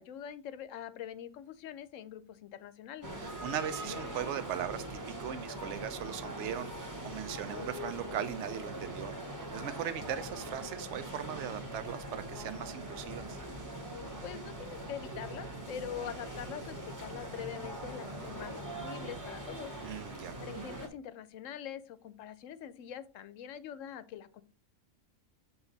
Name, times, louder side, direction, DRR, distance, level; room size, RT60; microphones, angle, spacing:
voice 1, 0.0-3.1 14.2-19.7 20.4-24.4, left 9 dB, 75° left, 0.9 m, -44 dB
sound 1, 3.0-20.9, right 1 dB, 15° right, 1.0 m, -42 dB
voice 2, 3.2-9.1 9.5-13.4 19.8-20.3, right 9 dB, 65° right, 0.9 m, -39 dB
7.2 x 4.0 x 3.9 m
omnidirectional pair, 1.4 m